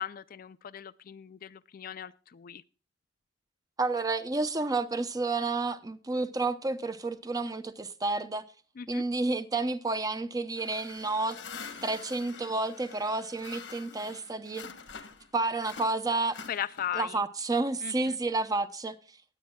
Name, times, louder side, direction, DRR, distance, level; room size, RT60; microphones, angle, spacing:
voice 1, 0.0-2.6 8.8-9.0 16.5-17.2 17.8-18.2, left 9 dB, 50° left, 0.4 m, -38 dB
voice 2, 3.8-8.4 8.9-11.4 11.8-14.6 15.3-16.4 16.9-19.0, right 3 dB, 20° right, 0.6 m, -30 dB
sound 1, 10.6-15.3 15.6-17.1, left 5 dB, 80° left, 1.3 m, -46 dB
20.0 x 8.4 x 2.2 m
head